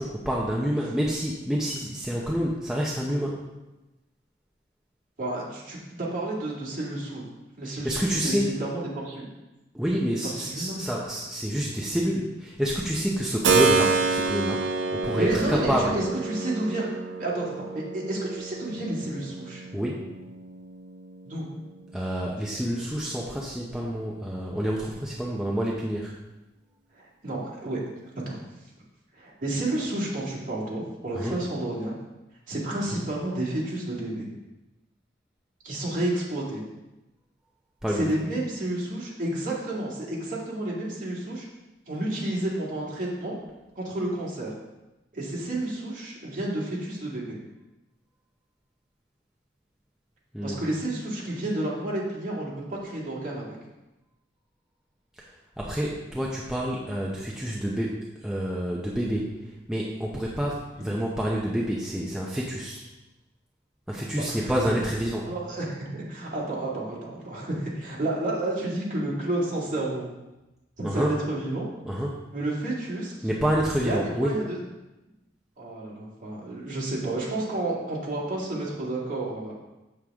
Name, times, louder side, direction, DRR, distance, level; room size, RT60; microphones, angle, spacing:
voice 1, 0.0-3.4 7.6-8.5 9.7-16.0 19.7-20.1 21.9-26.1 31.1-31.4 37.8-38.1 50.3-50.6 55.6-62.8 63.9-65.3 70.8-71.1 71.9-72.3 73.2-74.3, equal, 5° right, -4 dB, 0.7 m, -28 dB
voice 2, 5.2-7.2 7.6-9.3 10.4-10.8 15.2-16.9 17.2-19.6 21.2-21.5 26.9-27.8 28.3-28.4 29.1-31.9 32.5-34.3 35.6-36.6 37.9-41.4 41.9-43.4 43.8-44.5 45.1-47.4 50.4-53.6 60.8-60.9 64.3-64.5 65.3-70.1 70.8-71.6 72.3-73.3 73.8-74.6 75.6-79.5, right 1 dB, 45° right, -5 dB, 2.2 m, -31 dB
Keyboard (musical), 13.4-22.0, right 4 dB, 80° right, 0.6 m, -28 dB
7.4 x 6.5 x 3.6 m, 1.0 s
head